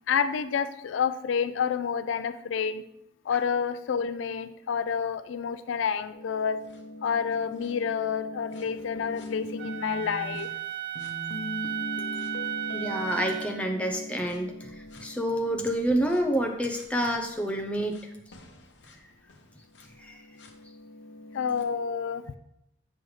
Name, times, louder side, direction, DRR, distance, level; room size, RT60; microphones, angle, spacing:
voice 1, 0.1-2.8 3.3-6.6 7.0-10.5 21.3-22.3, left 7 dB, 90° left, 12 dB, 0.4 m, -29 dB
sound 1, 6.1-10.5 11.0-16.9 17.9-18.0 18.3-21.6, left 1 dB, 75° left, 0.8 m, -41 dB
Wind instrument woodwind instrument, 9.6-13.7, right 12 dB, 65° right, 0.6 m, -35 dB
voice 2, 12.7-18.0 20.0-20.2, right 1 dB, 5° left, 3 dB, 0.6 m, -28 dB
7.7 x 5.4 x 3.2 m, 0.81 s
head